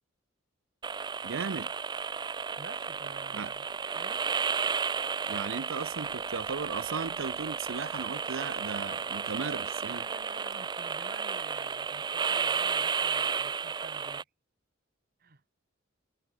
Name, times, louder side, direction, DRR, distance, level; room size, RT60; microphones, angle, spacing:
sound 1, 0.8-14.2, right 6 dB, 20° right, 0.3 m, -33 dB
voice 1, 1.2-1.7 3.3-3.5 5.3-10.1, right 5 dB, 75° right, 0.6 m, -36 dB
voice 2, 2.6-3.7 3.9-4.3 9.9-14.3 15.2-15.4, right 3 dB, 45° right, 1.5 m, -49 dB
head